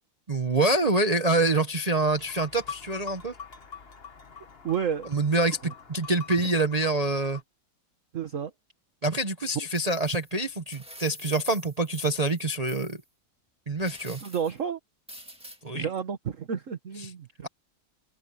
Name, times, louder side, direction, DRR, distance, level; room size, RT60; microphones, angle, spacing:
voice 1, 0.3-3.3 5.1-7.4 9.0-13.0 13.7-14.2 15.6-15.8, right 2 dB, 80° right, 0.3 m, -26 dB
sound 1, 2.1-7.4, left 6 dB, 35° left, 1.2 m, -44 dB
voice 2, 4.6-5.1 5.6-5.7 8.1-8.5 9.5-9.7 14.2-14.8 15.7-17.5, right 7 dB, 40° right, 1.4 m, -31 dB
sound 2, 9.7-13.0 13.8-14.6 15.1-15.6, equal, 5° right, 1.5 m, -48 dB
omnidirectional pair, 2.3 m